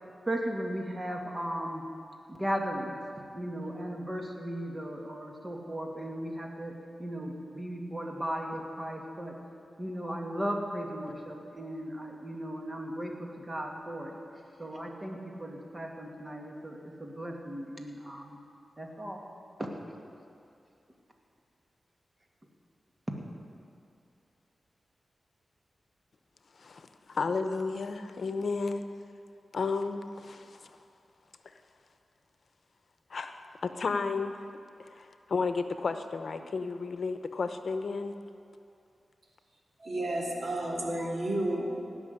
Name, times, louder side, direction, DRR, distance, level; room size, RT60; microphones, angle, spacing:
voice 1, 0.2-1.8 2.3-3.0 3.3-9.3 9.8-14.2 14.6-18.4 18.8-19.2 19.6-19.7, equal, 30° right, 1 dB, 2.4 m, -36 dB
voice 2, 26.6-28.8 29.5-30.8 31.4-31.5 33.1-34.4 34.8-38.1, left 4 dB, 70° left, 8 dB, 0.8 m, -33 dB
voice 3, 39.8-41.8, right 1 dB, 60° right, -2 dB, 2.8 m, -31 dB
17.5 x 6.2 x 9.5 m, 2.6 s
cardioid pair, 50°, 0 cm